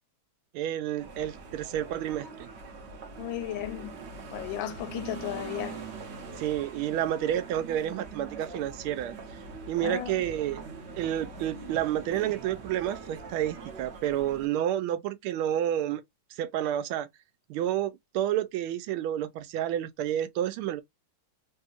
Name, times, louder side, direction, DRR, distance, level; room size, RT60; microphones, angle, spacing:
voice 1, 0.5-2.5 6.4-9.1 9.7-10.6 11.0-16.0 16.3-17.1 17.5-20.8, right 11 dB, 85° right, 1.5 m, -30 dB
sound 1, 1.0-14.5, right 4 dB, 70° right, 0.6 m, -43 dB
voice 2, 3.2-3.9 4.3-5.8 9.8-10.2, left 12 dB, 75° left, 1.2 m, -34 dB
3.4 x 2.8 x 2.3 m
omnidirectional pair, 2.3 m